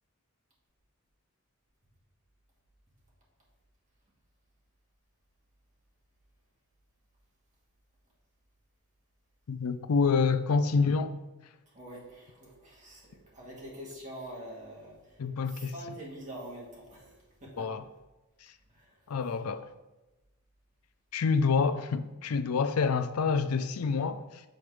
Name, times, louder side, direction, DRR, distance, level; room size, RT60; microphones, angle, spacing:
voice 1, 9.5-11.1 15.2-15.7 17.6-17.8 19.1-19.6 21.1-24.4, left 5 dB, 85° left, 0.5 m, -27 dB
voice 2, 11.7-15.2 15.5-17.7 18.7-19.0, right 1 dB, 35° right, 2.1 m, -45 dB
6.5 x 4.3 x 4.8 m
head